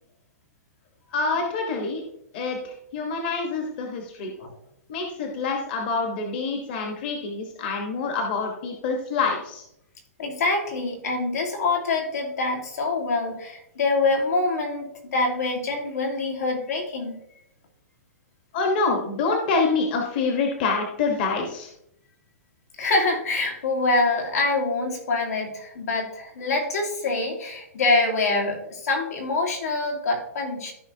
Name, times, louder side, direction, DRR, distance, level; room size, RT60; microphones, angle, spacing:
voice 1, 1.1-2.0 2.3-4.3 4.9-9.6 18.5-21.7, left 4 dB, 35° left, 2 dB, 1.2 m, -26 dB
voice 2, 10.2-17.2 22.8-30.7, left 3 dB, 80° left, 0 dB, 2.6 m, -25 dB
14.5 x 5.1 x 2.7 m, 0.77 s
hypercardioid pair, 175°, 8 cm